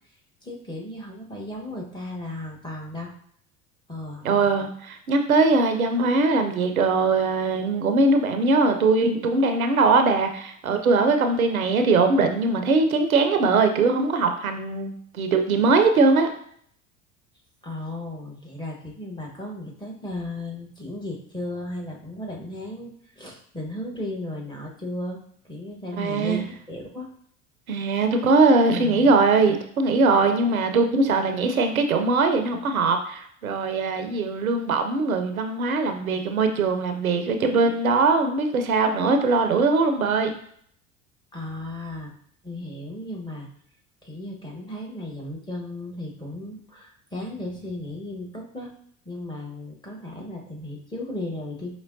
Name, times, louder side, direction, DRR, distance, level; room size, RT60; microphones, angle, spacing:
voice 1, 0.4-3.1 3.9-4.2 17.6-27.1 28.7-29.1 41.3-42.1 42.4-43.5 44.0-48.7 49.0-51.7, left 1 dB, 10° left, -1 dB, 1.1 m, -35 dB
voice 2, 4.2-16.3 26.0-26.4 27.7-40.3, right 3 dB, 90° right, 6 dB, 0.5 m, -21 dB
5.2 x 3.0 x 2.6 m, 0.63 s
figure-of-eight pair, 65°, 41 cm